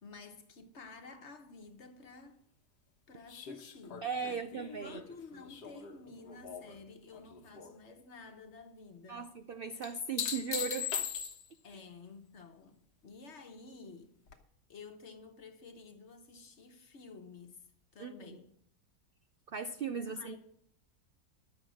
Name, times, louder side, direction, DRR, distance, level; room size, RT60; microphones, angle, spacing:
voice 1, 0.0-2.4 3.1-9.3 11.6-14.1 14.7-17.6 17.9-18.5 20.1-20.4, left 4 dB, 50° left, 1.3 m, -52 dB
sound 1, 3.3-6.8 7.1-7.7 9.8-11.7 14.3-14.4, left 8 dB, 85° left, 1.7 m, -40 dB
voice 2, 4.0-5.0 9.1-11.0 11.7-11.8 18.0-18.4 19.5-20.4, right 5 dB, 65° right, 0.5 m, -38 dB
11.5 x 7.4 x 6.2 m
omnidirectional pair, 1.7 m